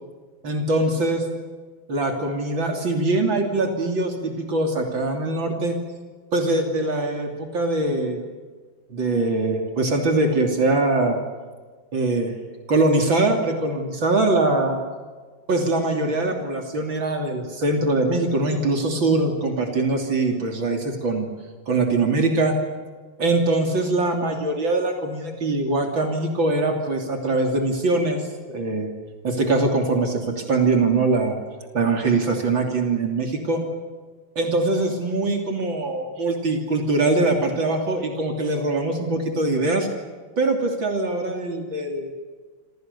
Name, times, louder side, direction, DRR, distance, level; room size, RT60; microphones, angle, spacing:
voice 1, 0.4-1.3 1.9-5.8 6.3-8.2 8.9-11.2 11.9-12.4 12.7-14.8 15.5-21.3 21.7-22.5 23.2-28.9 29.2-31.4 31.7-33.6 34.4-39.9 40.4-42.1, right 2 dB, 70° right, 3 dB, 3.7 m, -22 dB
28.5 x 26.5 x 6.9 m, 1.5 s
omnidirectional pair, 2.2 m